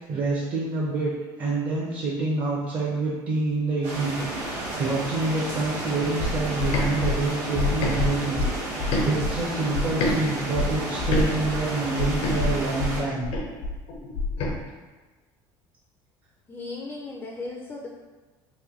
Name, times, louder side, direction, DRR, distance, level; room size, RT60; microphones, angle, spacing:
voice 1, 0.1-13.3, right 3 dB, 50° right, -6 dB, 0.8 m, -27 dB
sound 1, 3.8-13.0, right 2 dB, 90° right, 1.0 m, -32 dB
sound 2, 6.2-10.2 10.5-14.5, left 2 dB, 65° left, 0.7 m, -27 dB
voice 2, 16.5-17.9, left 3 dB, 25° left, -1 dB, 0.5 m, -36 dB
3.2 x 2.2 x 3.7 m, 1.3 s
supercardioid pair, 105°, 11 cm